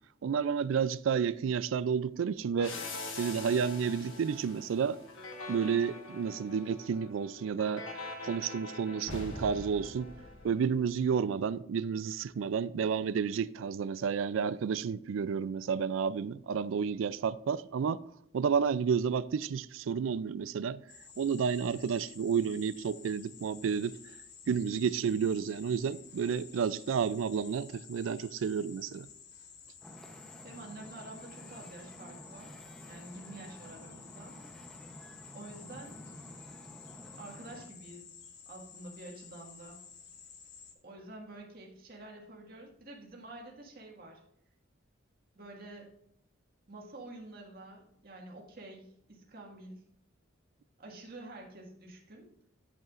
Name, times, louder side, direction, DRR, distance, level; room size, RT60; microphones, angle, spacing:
voice 1, 0.2-2.7 3.2-5.0 5.5-7.9 8.2-10.1 10.4-18.0 18.3-20.8 21.2-24.0 24.5-29.1, right 6 dB, 75° right, 0.3 m, -31 dB
sound 1, 2.6-11.0, left 2 dB, 80° left, 1.3 m, -44 dB
sound 2, 20.9-40.7, left 6 dB, 60° left, 1.1 m, -53 dB
Wind / Ocean, 29.8-37.7, equal, 5° left, 0.8 m, -51 dB
voice 2, 30.4-32.6 32.9-34.4 35.3-36.0 37.2-38.1 38.4-39.8 40.8-44.2 45.3-45.9 46.7-49.8 50.8-52.3, right 2 dB, 50° right, 1.8 m, -48 dB
10.5 x 8.1 x 2.5 m
head